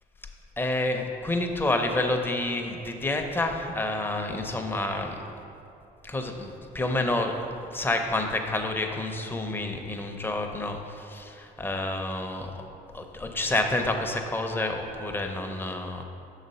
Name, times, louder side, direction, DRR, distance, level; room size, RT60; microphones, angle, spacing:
voice 1, 0.6-5.2 6.0-7.4 7.7-12.5 12.9-16.0, left 2 dB, 10° left, 3 dB, 0.6 m, -29 dB
5.9 x 4.0 x 5.4 m, 2.7 s
cardioid pair, 110°, 17 cm